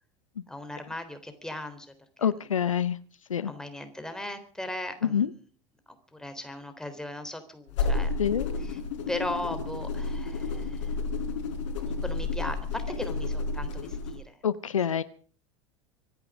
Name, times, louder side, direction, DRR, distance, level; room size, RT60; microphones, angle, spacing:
voice 1, 0.5-2.9 3.4-5.5 6.1-8.1 8.6-8.8 9.1-11.5 11.8-14.4, left 1 dB, 5° left, 8 dB, 3.7 m, -38 dB
voice 2, 2.2-3.0 3.3-3.5 5.1-5.3 8.2-8.5 14.4-15.0, left 8 dB, 85° left, 17 dB, 0.7 m, -26 dB
sound 1, 7.7-14.2, left 3 dB, 65° left, 4.4 m, -31 dB
25.0 x 11.0 x 5.0 m, 0.43 s
figure-of-eight pair, 80°, 17 cm